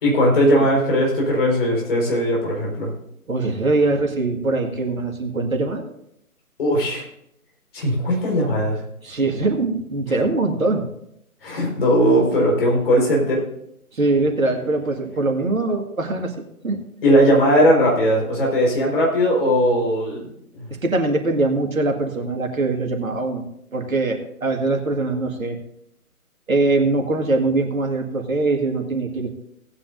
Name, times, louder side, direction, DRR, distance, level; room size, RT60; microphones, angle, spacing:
voice 1, 0.0-2.9 6.6-7.0 7.7-8.8 11.4-13.4 17.0-20.3 20.5-20.7, equal, 40° left, -2 dB, 4.8 m, -18 dB
voice 2, 3.3-5.8 9.0-10.8 13.9-16.3 16.6-16.8 20.7-23.4 23.7-25.6 26.5-29.3, right 3 dB, 65° right, 3 dB, 2.1 m, -22 dB
18.0 x 9.6 x 2.7 m, 0.76 s
figure-of-eight pair, 140°, 44 cm